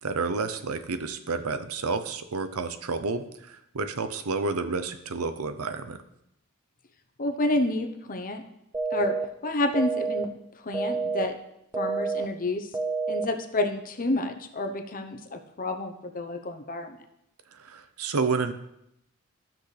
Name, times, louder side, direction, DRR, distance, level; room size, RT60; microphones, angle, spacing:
voice 1, 0.0-6.0 17.5-18.5, right 4 dB, 70° right, 10 dB, 0.7 m, -30 dB
voice 2, 7.2-8.4 8.9-9.1 9.4-10.3 10.6-11.4 11.8-12.7 13.1-17.0, left 1 dB, 40° left, 5 dB, 0.9 m, -29 dB
sound 1, 8.7-9.2 9.7-10.2 10.7-11.2 11.7-12.2 12.7-13.2, right 4 dB, 15° right, 0.7 m, -28 dB
15.0 x 6.0 x 3.4 m, 0.80 s
head